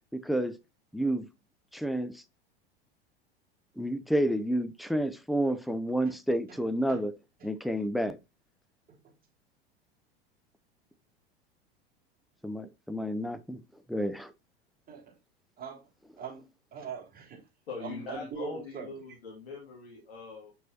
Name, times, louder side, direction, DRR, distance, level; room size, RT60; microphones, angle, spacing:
voice 1, 0.1-0.6 0.9-1.3 1.7-2.2 3.8-7.1 7.4-8.2 12.4-13.6 13.9-14.3, right 1 dB, ahead, 0.5 m, -30 dB
voice 2, 16.2-17.4 17.8-18.9, right 6 dB, 30° right, 3.2 m, -41 dB
voice 3, 17.7-20.5, left 4 dB, 80° left, 2.4 m, -42 dB
7.3 x 6.0 x 2.8 m
figure-of-eight pair, 85°, 30 cm